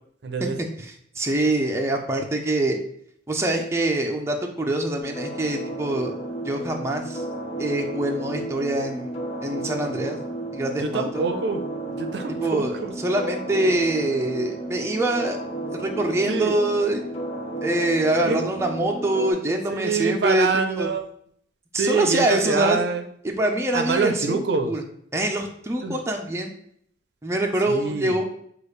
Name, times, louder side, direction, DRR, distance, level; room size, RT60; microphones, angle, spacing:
voice 1, 0.2-0.6 10.8-12.9 16.3-16.6 18.2-18.4 19.7-21.1 21.8-23.0 23.7-24.7 25.8-26.0 27.7-28.2, right 4 dB, 65° right, 6 dB, 0.5 m, -25 dB
voice 2, 0.8-2.8 3.3-6.2 6.4-7.2 7.6-10.2 10.5-11.2 12.4-15.4 15.7-17.0 17.6-20.9 21.7-22.8 23.2-24.8 25.1-26.5 27.2-28.2, right 1 dB, 15° right, 2 dB, 0.5 m, -24 dB
sound 1, 5.0-19.3, right 2 dB, 35° left, 0.8 m, -33 dB
6.5 x 2.4 x 3.2 m, 0.68 s
head